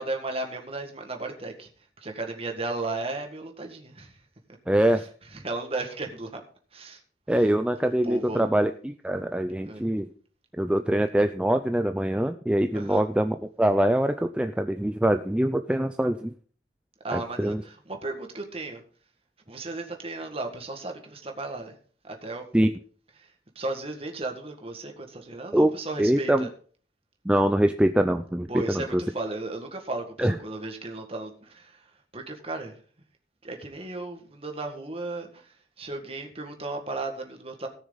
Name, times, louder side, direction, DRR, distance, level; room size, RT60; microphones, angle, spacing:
voice 1, 0.0-1.7 2.0-4.2 4.9-6.4 6.7-7.0 7.8-8.5 9.6-9.8 12.7-13.0 17.0-18.8 19.5-21.8 22.0-22.4 23.2-26.5 28.5-32.8 33.4-37.7, right 2 dB, 30° right, 3 dB, 1.8 m, -35 dB
voice 2, 4.7-5.0 7.3-10.1 10.6-16.3 17.1-17.6 22.5-22.7 25.5-25.7 26.0-26.5 27.3-29.0 30.2-30.3, right 1 dB, 5° right, 7 dB, 0.4 m, -24 dB
18.0 x 6.4 x 4.0 m, 0.44 s
head